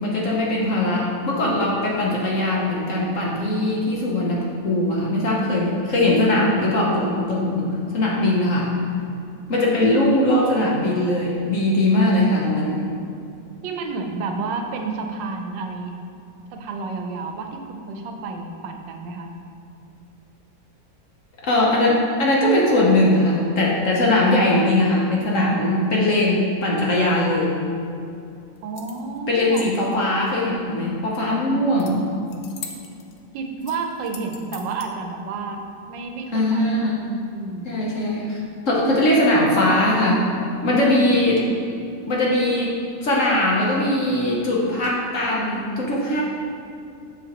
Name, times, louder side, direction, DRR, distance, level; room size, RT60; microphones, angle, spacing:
voice 1, 0.0-7.7 7.9-8.7 9.5-12.9 21.4-27.5 29.3-32.1 36.3-37.0 37.6-38.4 38.7-40.3 40.6-41.5 42.1-42.7 43.0-46.2, left 1 dB, 55° left, -4 dB, 1.0 m, -20 dB
voice 2, 13.6-16.0 16.5-19.3 28.6-29.7 33.3-35.6 35.9-36.7 37.3-37.8 40.9-41.5, right 4 dB, 80° right, 4 dB, 1.3 m, -31 dB
sound 1, 28.5-29.2 31.8-31.9 32.2-33.2 33.6-34.9, left 7 dB, 85° left, 0.6 m, -40 dB
7.2 x 6.3 x 2.9 m, 2.6 s
omnidirectional pair, 2.0 m